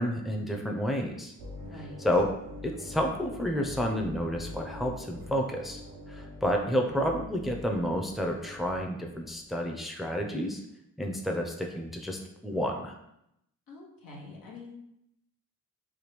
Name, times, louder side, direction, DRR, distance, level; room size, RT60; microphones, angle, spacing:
voice 1, 0.0-1.3 2.0-2.3 2.6-5.8 6.1-10.6 11.0-12.9, equal, ahead, 2 dB, 0.5 m, -30 dB
sound 1, 1.4-9.5, left 1 dB, 85° right, 0.7 m, -44 dB
voice 2, 1.6-2.0 13.7-14.7, left 2 dB, 80° left, -2 dB, 0.9 m, -46 dB
3.5 x 2.2 x 3.1 m, 0.80 s
supercardioid pair, 45°, 34 cm